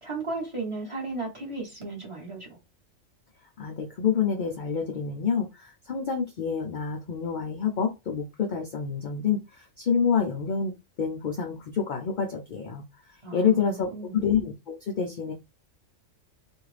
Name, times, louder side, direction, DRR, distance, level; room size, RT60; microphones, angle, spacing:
voice 1, 0.0-2.6 13.2-14.2, right 3 dB, 25° right, 0.8 m, -35 dB
voice 2, 3.6-10.7 11.0-15.3, left 6 dB, 70° left, 0.4 m, -28 dB
2.6 x 2.4 x 3.1 m
omnidirectional pair, 1.4 m